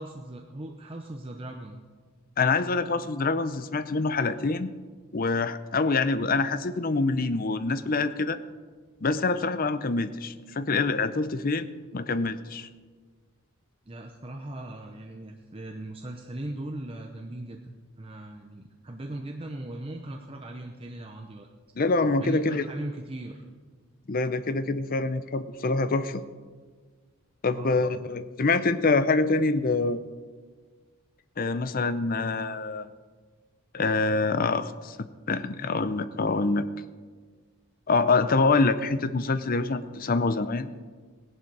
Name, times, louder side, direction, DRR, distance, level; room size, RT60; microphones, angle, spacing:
voice 1, 0.0-1.8 13.9-17.6 18.0-21.5 22.2-23.4 27.5-28.0, right 1 dB, 25° right, 3 dB, 0.7 m, -39 dB
voice 2, 2.4-4.7 5.1-8.4 9.0-11.7 11.9-12.7 21.8-22.7 24.1-26.2 27.4-30.0 31.4-32.9 33.7-36.7 37.9-40.7, left 3 dB, 40° left, 12 dB, 0.6 m, -25 dB
17.0 x 11.0 x 4.7 m, 1.5 s
head